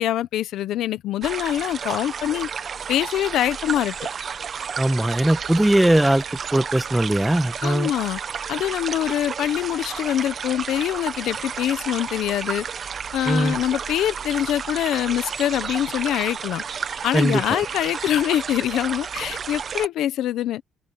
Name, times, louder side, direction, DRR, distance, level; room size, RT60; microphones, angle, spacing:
voice 1, 0.0-2.5 2.9-3.9 7.6-8.2 8.5-12.6 13.1-16.6 17.0-20.6, left 12 dB, 80° left, 1.0 m, -24 dB
sound 1, 1.2-19.9, right 6 dB, 50° right, 1.5 m, -32 dB
voice 2, 4.8-6.2 6.5-7.9 13.3-13.6 17.1-17.6, right 1 dB, 10° right, 1.6 m, -20 dB
open air
cardioid pair, 90°, 0 cm